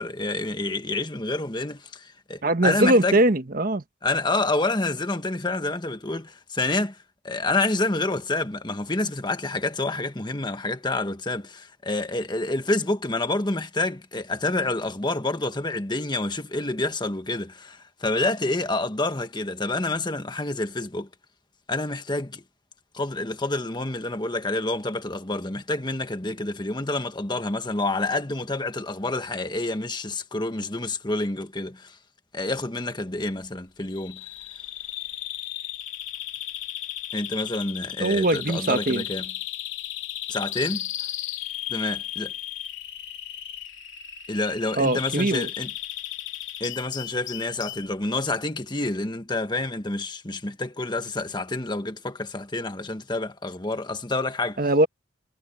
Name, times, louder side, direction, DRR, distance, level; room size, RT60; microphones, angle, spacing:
voice 1, 0.0-3.2 4.0-7.0 7.2-21.1 21.7-22.4 22.9-31.9 32.3-34.2 37.1-39.3 40.3-40.9 41.7-42.3 44.3-45.7 46.6-54.6, left 2 dB, 20° left, 1.4 m, -28 dB
voice 2, 2.4-3.8 38.0-39.0 44.7-45.5 54.6-54.9, right 1 dB, 45° right, 1.3 m, -21 dB
Bird vocalization bird call bird song, 33.9-47.9, left 12 dB, 75° left, 2.6 m, -35 dB
head